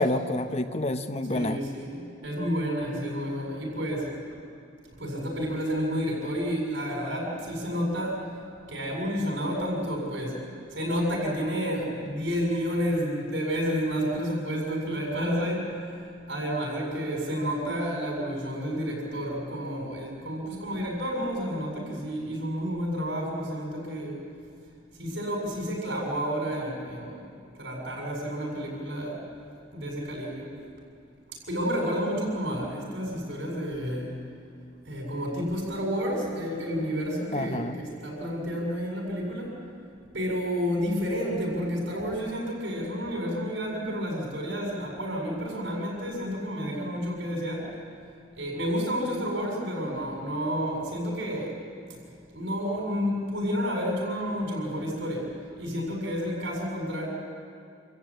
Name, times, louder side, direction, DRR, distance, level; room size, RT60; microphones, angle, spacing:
voice 1, 0.0-1.6 37.3-37.8, left 1 dB, 35° left, 8 dB, 0.9 m, -28 dB
voice 2, 1.3-4.1 5.0-8.2 8.7-10.4 10.7-16.0 16.3-24.2 25.0-29.2 29.7-30.5 31.5-34.2 34.9-39.5 40.1-47.7 48.3-51.5 52.3-57.1, equal, 75° right, -1 dB, 7.6 m, -30 dB
27.5 x 15.0 x 8.8 m, 2.4 s
head